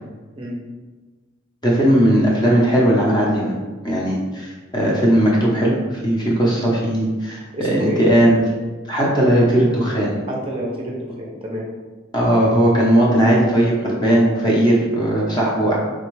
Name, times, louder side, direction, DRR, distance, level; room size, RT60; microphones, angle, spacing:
voice 1, 1.6-3.5 3.8-8.4 8.9-10.1 12.1-15.8, right 1 dB, 20° left, -4 dB, 0.7 m, -17 dB
voice 2, 7.5-8.0 10.3-11.7, right 1 dB, 30° right, -2 dB, 0.5 m, -28 dB
3.4 x 2.3 x 3.1 m, 1.4 s
head